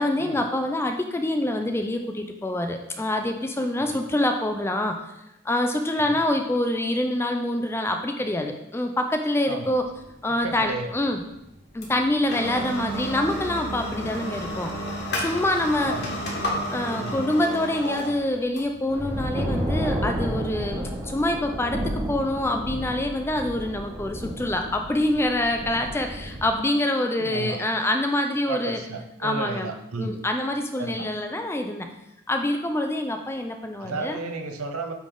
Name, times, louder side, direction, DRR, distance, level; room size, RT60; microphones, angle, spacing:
voice 1, 0.0-5.0 5.4-9.8 10.2-11.2 11.7-14.8 15.2-16.0 16.7-28.8 29.2-29.7 30.0-31.9 32.3-34.2, left 1 dB, 10° left, 5 dB, 0.4 m, -26 dB
sound 1, 9.6-20.8, equal, 50° left, 1.4 m, -33 dB
voice 2, 10.3-10.9 15.8-16.1 17.0-17.3 27.2-27.7 28.5-30.2 30.8-31.1 33.8-34.9, right 3 dB, 85° right, 5 dB, 0.8 m, -33 dB
sound 2, 18.9-26.5, equal, 20° right, 1.2 m, -31 dB
8.9 x 3.4 x 3.8 m, 0.89 s
head